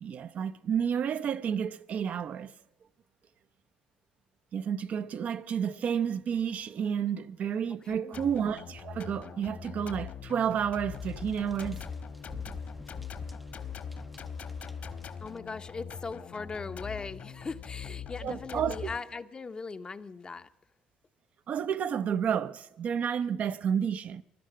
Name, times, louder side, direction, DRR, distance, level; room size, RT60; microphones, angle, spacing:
voice 1, 0.0-2.5 4.5-11.8 18.2-18.9 21.5-24.2, right 8 dB, 55° right, 0.7 m, -31 dB
voice 2, 7.8-8.2 14.8-14.9 15.2-20.5, left 4 dB, 30° left, 0.8 m, -39 dB
sound 1, 8.1-19.0, left 7 dB, 55° left, 1.6 m, -41 dB
sound 2, 10.9-15.4, equal, ahead, 0.6 m, -49 dB
16.0 x 12.0 x 7.5 m
cardioid pair, 95°, 3 cm